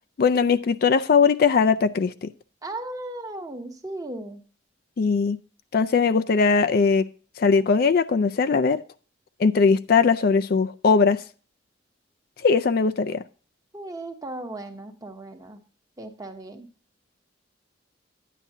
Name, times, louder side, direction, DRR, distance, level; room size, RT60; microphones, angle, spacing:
voice 1, 0.2-2.3 5.0-5.4 5.7-7.0 7.4-8.8 9.4-11.2 12.4-13.2, left 5 dB, 50° left, 0.4 m, -20 dB
voice 2, 2.6-4.4 13.7-15.6 16.0-16.7, right 2 dB, 20° right, 1.0 m, -36 dB
10.0 x 9.3 x 2.7 m
head